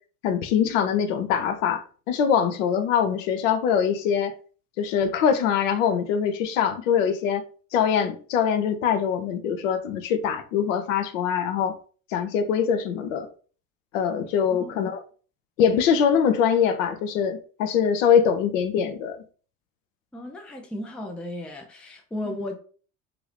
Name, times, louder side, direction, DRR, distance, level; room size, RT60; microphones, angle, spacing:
voice 1, 0.2-4.3 4.8-7.4 7.7-11.8 12.1-13.3 13.9-15.0 15.6-19.2 22.3-22.4, left 7 dB, 60° left, 0.6 m, -23 dB
voice 2, 14.5-14.8 20.1-22.6, left 1 dB, 5° left, 0.4 m, -35 dB
2.8 x 2.5 x 3.2 m
figure-of-eight pair, 60°, 43 cm